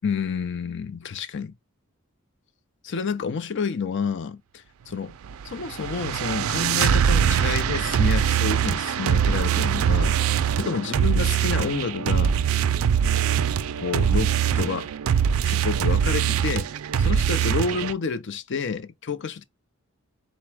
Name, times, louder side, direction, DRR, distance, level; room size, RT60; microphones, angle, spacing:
voice 1, 0.0-1.5 2.8-5.1 5.4-12.4 13.8-14.9 15.4-16.7 17.0-19.4, left 5 dB, 55° left, 0.5 m, -29 dB
sound 1, 5.2-17.9, right 8 dB, 70° right, 0.3 m, -22 dB
4.0 x 2.2 x 4.5 m
head